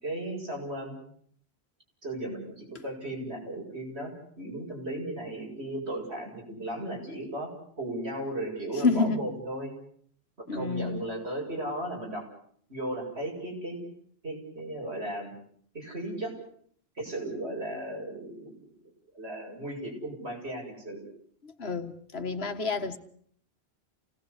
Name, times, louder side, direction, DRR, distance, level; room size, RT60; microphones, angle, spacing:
voice 1, 0.0-1.0 2.0-9.7 10.4-12.3 12.7-13.8 14.2-15.3 15.7-16.3 17.0-18.7 19.1-21.0, right 1 dB, 85° right, 8.0 m, -36 dB
voice 2, 8.8-9.2 10.5-11.0 21.6-23.0, left 4 dB, 75° left, 2.0 m, -28 dB
28.5 x 18.5 x 8.3 m
omnidirectional pair, 1.1 m